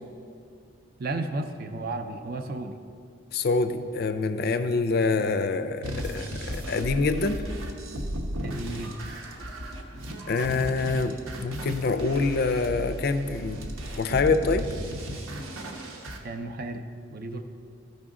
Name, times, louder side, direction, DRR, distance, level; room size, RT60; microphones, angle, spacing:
voice 1, 1.0-2.8 8.4-9.0 16.2-16.8 17.1-17.4, right 2 dB, 45° right, 6 dB, 0.5 m, -33 dB
voice 2, 3.3-7.4 10.3-13.7 14.0-14.7, left 3 dB, 45° left, 9 dB, 0.4 m, -26 dB
sound 1, 5.8-16.2, equal, 80° right, 0.9 m, -35 dB
13.5 x 5.3 x 3.7 m, 2.3 s
head